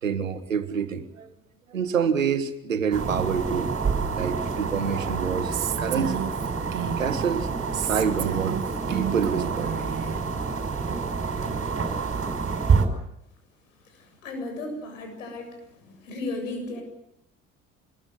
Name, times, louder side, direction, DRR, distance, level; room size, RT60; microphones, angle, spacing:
voice 1, 0.0-1.3 1.7-3.8 4.1-6.1 7.0-7.5 7.8-8.6 8.9-9.7, right 7 dB, 90° right, 10 dB, 1.7 m, -27 dB
sound 1, 2.9-12.9, right 5 dB, 35° right, 5.7 m, -28 dB
Female speech woman speaking, 5.5-7.2 7.7-10.2, right 11 dB, 55° right, 2.5 m, -31 dB
voice 2, 14.0-15.6 15.8-16.8, left 2 dB, 85° left, 4 dB, 7.6 m, -35 dB
26.0 x 21.5 x 7.8 m, 0.84 s
hypercardioid pair, 55°, 38 cm